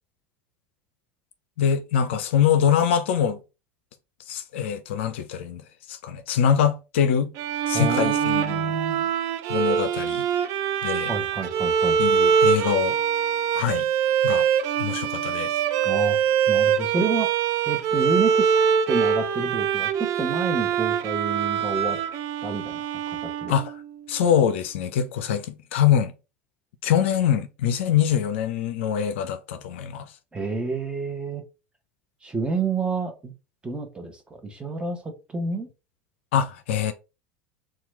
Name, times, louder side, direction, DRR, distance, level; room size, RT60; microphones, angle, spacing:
voice 1, 1.6-3.4 4.3-7.3 7.7-8.6 9.5-10.3 10.8-11.1 12.0-13.0 13.5-13.9 14.2-14.5 14.8-15.5 23.5-23.8 24.1-26.1 26.8-30.1 36.3-36.9, left 8 dB, 70° left, 0.4 m, -24 dB
Bowed string instrument, 7.4-23.9, right 8 dB, 50° right, 0.4 m, -24 dB
voice 2, 7.7-9.1 11.1-12.0 15.8-16.2 16.5-17.3 17.7-18.5 18.9-22.0 22.4-23.5 30.3-31.4 32.2-33.3 33.6-35.7, right 3 dB, 15° right, 0.9 m, -29 dB
2.9 x 2.3 x 3.2 m
hypercardioid pair, 75°, 7 cm